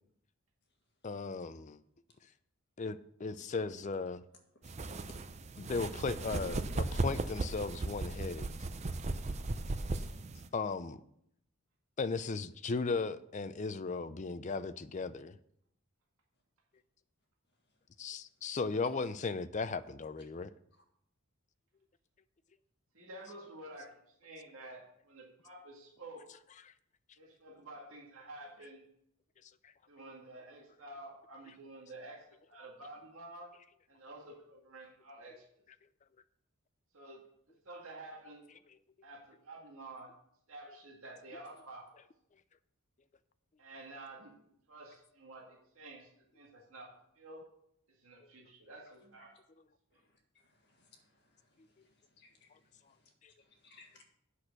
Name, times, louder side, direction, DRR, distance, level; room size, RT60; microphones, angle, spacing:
voice 1, 1.0-1.8 2.8-4.2 5.6-8.5 10.5-11.0 12.0-15.4 18.0-20.5 48.2-48.3, left 4 dB, 35° left, 13 dB, 0.4 m, -36 dB
sound 1, 4.6-10.5, right 2 dB, 30° right, 0.5 m, -36 dB
voice 2, 22.9-26.3 27.2-28.8 29.9-33.5 33.9-35.6 36.9-37.2 37.7-38.5 39.0-40.1 40.5-41.9 43.6-47.4 48.0-49.4, right 2 dB, 65° right, -1 dB, 1.8 m, -50 dB
voice 3, 50.4-51.4 52.2-52.6 53.4-54.0, left 4 dB, 50° left, 2 dB, 1.8 m, -63 dB
8.4 x 6.2 x 6.5 m, 0.72 s
head